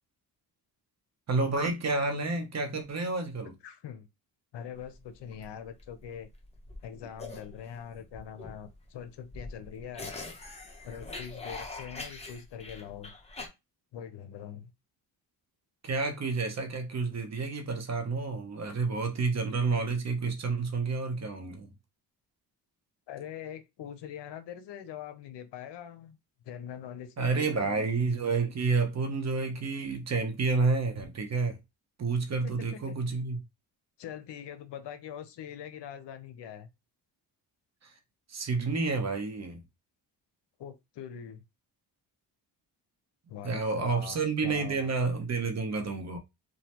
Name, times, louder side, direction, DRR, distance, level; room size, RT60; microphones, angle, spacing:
voice 1, 1.3-3.5 15.8-21.7 27.2-31.6 32.0-33.4 38.3-39.6 43.4-46.2, right 4 dB, 40° right, 0.8 m, -29 dB
voice 2, 3.4-4.1 4.5-6.3 6.8-10.1 10.8-13.1 13.9-14.7 23.1-26.2 26.5-27.8 32.3-33.0 34.0-36.7 40.6-41.4 43.3-44.9, left 9 dB, 75° left, 0.7 m, -43 dB
sound 1, 4.8-13.5, left 2 dB, 15° left, 0.9 m, -43 dB
3.1 x 2.2 x 2.9 m
cardioid pair, 90°, 43 cm